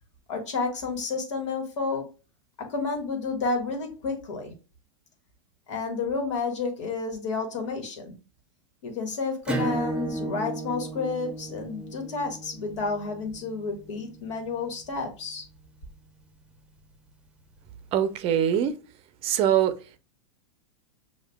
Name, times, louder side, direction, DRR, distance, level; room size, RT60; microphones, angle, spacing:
voice 1, 0.3-2.1 2.6-4.5 5.7-8.1 8.8-15.4, left 4 dB, 75° left, 1.5 m, -31 dB
Acoustic guitar / Strum, 9.5-14.7, right 2 dB, 5° right, 0.8 m, -34 dB
voice 2, 17.9-18.7 19.2-19.7, right 9 dB, 40° right, 0.6 m, -22 dB
6.4 x 2.4 x 2.3 m
hypercardioid pair, 110°, 16 cm